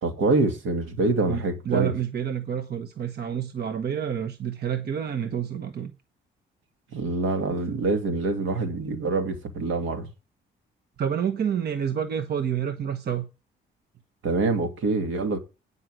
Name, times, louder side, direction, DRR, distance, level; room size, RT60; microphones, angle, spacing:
voice 1, 0.0-1.9 6.9-10.1 14.2-15.4, right 3 dB, 80° right, 2.4 m, -25 dB
voice 2, 1.3-5.9 11.0-13.3, right 8 dB, 55° right, 1.2 m, -28 dB
9.6 x 5.6 x 7.6 m
cardioid pair, 90°, 20 cm